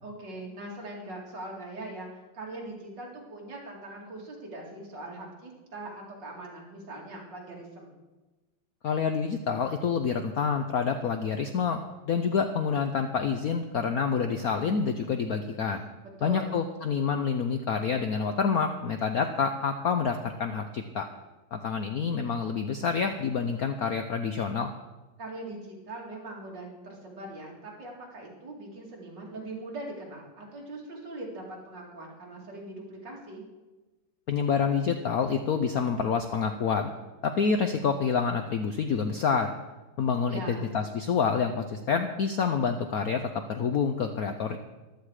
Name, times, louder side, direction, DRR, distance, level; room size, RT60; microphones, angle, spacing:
voice 1, 0.0-8.0 16.2-16.6 25.2-33.4 40.3-40.7, right 2 dB, 55° right, -2 dB, 3.3 m, -41 dB
voice 2, 8.8-11.8 12.0-15.9 16.2-21.1 21.5-24.7 34.3-36.9 37.2-39.6 40.0-44.6, left 6 dB, 65° left, 7 dB, 0.9 m, -27 dB
15.0 x 12.0 x 4.9 m, 1.1 s
omnidirectional pair, 2.3 m